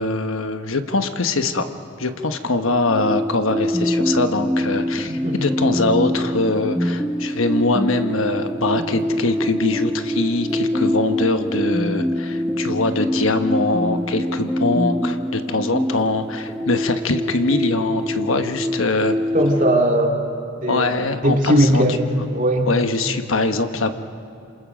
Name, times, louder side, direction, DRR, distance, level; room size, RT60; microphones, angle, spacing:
voice 1, 0.0-1.7 2.0-19.2 20.7-21.8 22.7-23.9, left 2 dB, 85° left, 8 dB, 1.2 m, -22 dB
sound 1, 2.8-19.8, equal, 5° left, 1.0 m, -24 dB
voice 2, 5.1-5.4 19.3-20.3 20.6-22.0 22.3-22.7, right 1 dB, 40° right, 0 dB, 2.5 m, -19 dB
27.5 x 27.0 x 5.2 m, 2.6 s
head